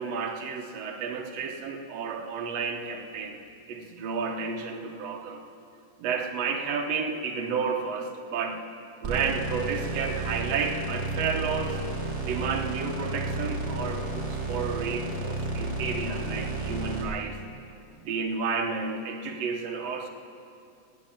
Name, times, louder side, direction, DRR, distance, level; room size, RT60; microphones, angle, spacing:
voice 1, 0.0-3.4 3.7-5.4 6.0-8.6 9.0-11.8 12.2-17.4 18.0-20.1, right 5 dB, 60° right, 2 dB, 2.0 m, -31 dB
sound 1, 9.0-17.0, right 2 dB, 35° right, 2.0 m, -32 dB
17.0 x 8.5 x 8.9 m, 2.7 s
omnidirectional pair, 4.0 m